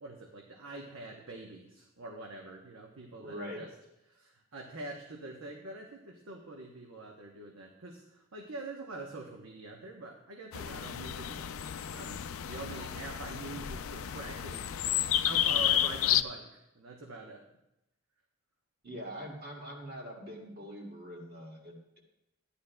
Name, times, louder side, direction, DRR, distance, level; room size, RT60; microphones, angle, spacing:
voice 1, 0.0-3.7 4.1-11.6 11.9-14.8 15.2-17.4, right 2 dB, 80° right, 0 dB, 0.9 m, -45 dB
voice 2, 3.2-3.6 18.8-22.0, equal, 45° right, -1 dB, 2.0 m, -43 dB
sound 1, 10.5-16.2, left 11 dB, 80° left, 0.4 m, -31 dB
13.5 x 10.0 x 2.2 m, 0.88 s
head